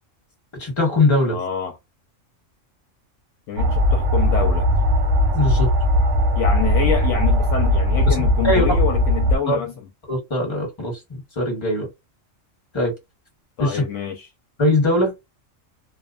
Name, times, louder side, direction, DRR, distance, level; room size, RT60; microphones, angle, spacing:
voice 1, 0.6-1.4 5.3-5.7 8.1-8.6 9.5-9.6 10.1-11.9 12.7-12.9 13.6-13.8 14.6-15.1, left 1 dB, 25° left, 1.0 m, -21 dB
voice 2, 1.3-1.8 3.5-4.7 6.4-9.7 13.6-14.3, left 8 dB, 70° left, 0.9 m, -26 dB
sound 1, 3.6-9.4, left 1 dB, 65° right, 0.9 m, -18 dB
2.6 x 2.1 x 2.4 m
omnidirectional pair, 1.4 m